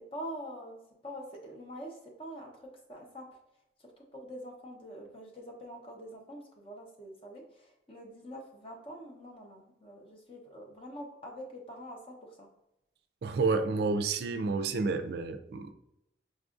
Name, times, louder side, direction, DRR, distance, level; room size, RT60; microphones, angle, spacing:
voice 1, 0.1-3.2 4.1-12.5, equal, 30° left, 0 dB, 0.8 m, -45 dB
voice 2, 13.2-15.7, right 4 dB, 65° right, 8 dB, 0.3 m, -30 dB
5.2 x 2.4 x 2.4 m, 0.86 s
head